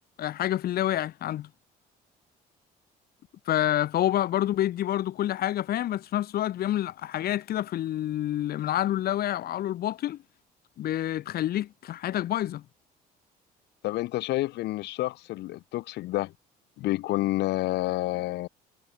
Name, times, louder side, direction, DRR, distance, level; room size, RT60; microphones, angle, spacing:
voice 1, 0.2-1.5 3.5-10.2 10.8-12.6, left 12 dB, 65° left, 3.3 m, -28 dB
voice 2, 13.8-16.3 16.8-18.5, left 17 dB, 80° left, 3.5 m, -29 dB
cardioid pair, 110°, 17 cm